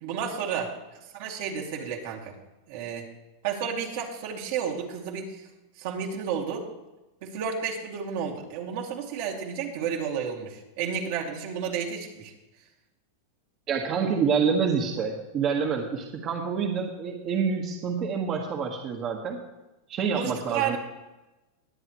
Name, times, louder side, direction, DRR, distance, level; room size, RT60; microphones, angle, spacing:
voice 1, 0.0-0.7 1.1-2.3 2.7-3.1 3.4-5.4 5.8-6.6 7.2-12.3 20.1-20.8, right 7 dB, 65° right, 0 dB, 2.4 m, -31 dB
voice 2, 13.7-19.4 19.9-20.8, right 6 dB, 40° right, 0 dB, 1.6 m, -27 dB
20.5 x 8.0 x 3.2 m, 1.0 s
hypercardioid pair, 120°, 0 cm